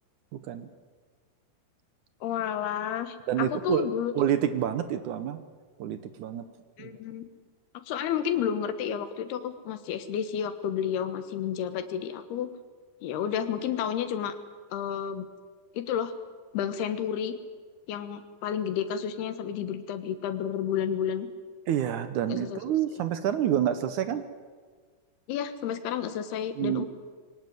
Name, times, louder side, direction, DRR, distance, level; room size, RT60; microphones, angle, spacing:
voice 1, 0.3-0.7 3.3-3.9 4.2-5.4 5.8-6.5 6.8-7.0 21.7-24.2 26.6-26.9, right 10 dB, 75° right, 10 dB, 1.9 m, -28 dB
voice 2, 2.2-4.1 6.8-7.2 7.9-12.5 13.0-14.3 14.7-15.3 15.7-16.1 16.5-17.3 17.9-21.3 22.3-22.6 25.3-26.9, left 9 dB, 80° left, 10 dB, 3.3 m, -31 dB
23.0 x 18.0 x 9.4 m, 1.5 s
omnidirectional pair, 4.6 m